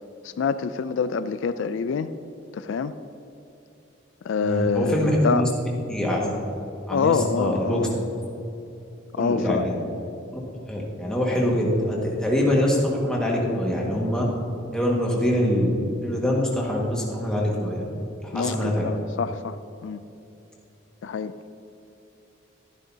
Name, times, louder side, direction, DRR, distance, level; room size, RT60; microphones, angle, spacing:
voice 1, 0.2-2.1 2.5-2.9 4.2-5.5 6.9-8.0 9.2-9.6 18.3-19.6 19.8-20.0 21.0-21.3, left 5 dB, 75° left, 12 dB, 0.3 m, -26 dB
voice 2, 4.4-5.5 5.9-6.3 6.9-7.9 9.2-9.7 10.7-14.3 14.7-17.8 18.2-18.9, equal, 5° left, -4 dB, 1.7 m, -24 dB
13.0 x 11.5 x 2.8 m, 2.8 s
head